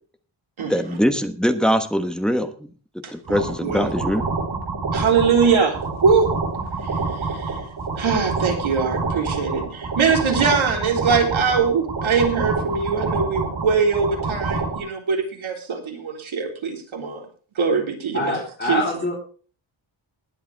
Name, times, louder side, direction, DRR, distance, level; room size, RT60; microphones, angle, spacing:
voice 1, 0.7-2.5 3.1-4.2, equal, ahead, 7 dB, 1.2 m, -22 dB
voice 2, 3.0-3.9 4.9-6.3 7.1-7.6 8.0-17.3 17.6-18.8, right 5 dB, 85° right, 2 dB, 3.9 m, -22 dB
sound 1, 3.2-14.8, right 4 dB, 60° right, 4.9 m, -27 dB
voice 3, 18.1-19.2, left 1 dB, 20° left, -5 dB, 4.0 m, -24 dB
20.5 x 8.1 x 3.5 m, 0.40 s
wide cardioid pair, 170°, 47 cm